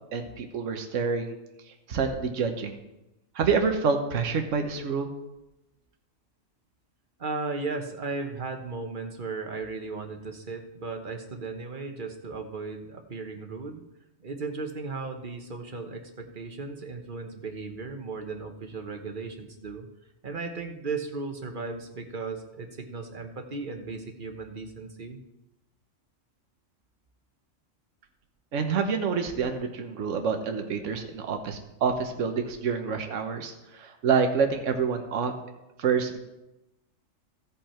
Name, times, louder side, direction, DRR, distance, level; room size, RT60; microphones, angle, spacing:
voice 1, 0.1-1.3 1.9-2.8 3.3-5.1 28.5-35.5 35.8-36.2, right 5 dB, 70° right, 5 dB, 1.3 m, -27 dB
voice 2, 7.2-13.8 14.2-19.9 20.2-25.2, right 4 dB, 40° right, 5 dB, 1.2 m, -36 dB
16.0 x 5.6 x 4.4 m, 0.93 s
omnidirectional pair, 1.4 m